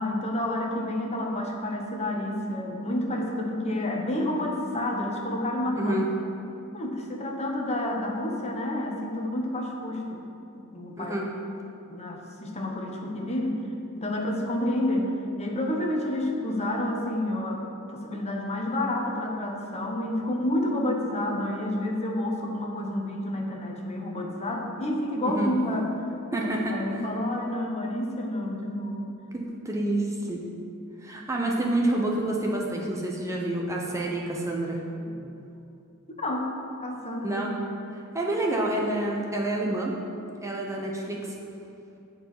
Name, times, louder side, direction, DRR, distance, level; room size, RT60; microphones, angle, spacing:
voice 1, 0.0-6.0 6.7-10.2 10.5-11.2 11.9-13.6 14.0-17.6 17.9-25.9 26.3-29.1 35.0-35.3 36.2-36.5 36.8-37.5, left 1 dB, 30° left, 0 dB, 1.2 m, -29 dB
voice 2, 5.8-6.1 11.0-11.3 25.2-25.5 26.3-26.8 29.3-30.4 31.0-34.8 37.2-37.5 38.1-39.9 40.4-41.2, right 1 dB, 15° right, -2 dB, 0.9 m, -28 dB
10.5 x 4.8 x 7.7 m, 2.7 s
head